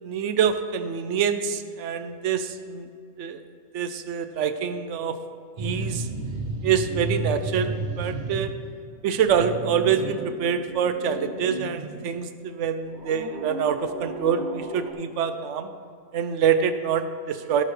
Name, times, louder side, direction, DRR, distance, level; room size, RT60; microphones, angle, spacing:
voice 1, 0.0-2.9 3.2-3.4 3.7-5.2 5.6-6.1 6.6-8.5 9.0-15.7 16.1-17.6, right 7 dB, 65° right, 10 dB, 0.8 m, -25 dB
sound 1, 5.6-8.7 9.0-12.1 12.9-14.9, right 2 dB, 40° right, 0.9 m, -33 dB
16.0 x 6.5 x 3.3 m, 2.3 s
omnidirectional pair, 1.5 m